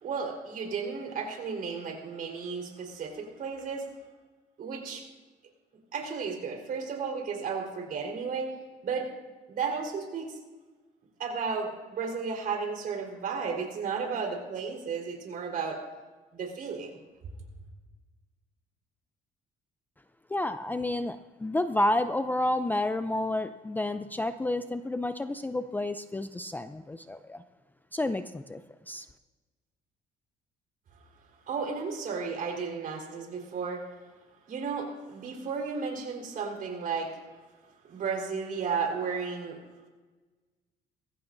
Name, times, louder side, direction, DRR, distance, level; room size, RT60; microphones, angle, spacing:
voice 1, 0.0-3.9 4.6-5.0 5.9-8.5 8.8-9.1 9.5-10.4 11.2-15.8 16.3-17.0 31.5-33.9 34.5-37.1 37.9-39.6, right 5 dB, 55° right, 1 dB, 4.1 m, -33 dB
voice 2, 20.3-27.4 27.9-28.6 28.9-29.1, left 1 dB, 10° left, 11 dB, 0.4 m, -30 dB
21.5 x 15.5 x 2.6 m, 1.3 s
cardioid pair, 110°, 17 cm